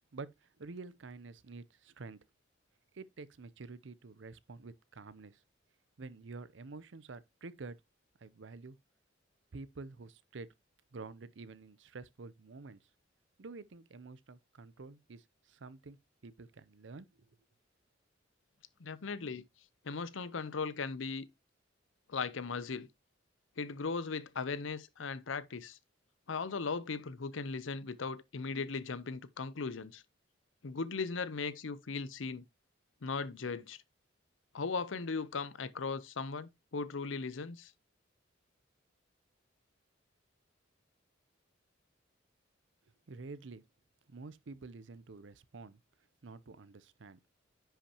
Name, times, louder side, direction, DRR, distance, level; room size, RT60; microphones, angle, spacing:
voice 1, 0.1-2.2 2.9-5.4 6.0-7.8 8.2-8.8 9.5-10.5 10.9-12.8 13.4-16.0 16.2-17.4 43.1-43.6 44.1-45.8 46.2-47.2, right 3 dB, 65° right, 0.6 m, -49 dB
voice 2, 18.8-19.4 19.8-21.3 22.1-22.9 23.6-25.8 26.3-30.0 30.6-32.4 33.0-33.8 34.5-37.7, left 4 dB, 80° left, 0.7 m, -38 dB
10.0 x 5.7 x 2.9 m
head